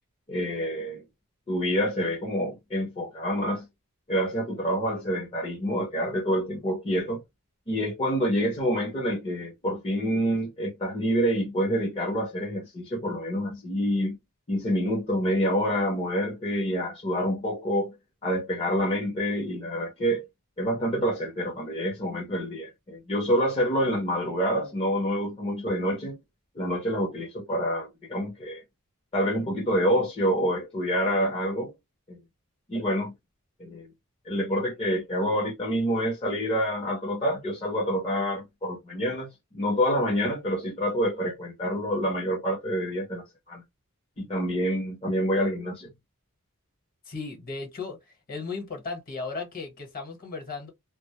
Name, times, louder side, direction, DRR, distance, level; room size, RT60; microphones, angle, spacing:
voice 1, 0.3-1.0 1.5-3.7 4.1-7.2 7.7-14.2 14.5-17.9 18.2-20.2 20.6-26.2 26.6-28.6 29.1-31.7 32.1-32.2 32.7-33.1 33.6-33.9 34.3-39.3 39.5-43.6 44.2-45.9, equal, 25° left, 0.7 m, -27 dB
voice 2, 47.1-48.0 48.3-50.7, left 4 dB, 40° left, 1.1 m, -35 dB
2.1 x 2.0 x 2.8 m
head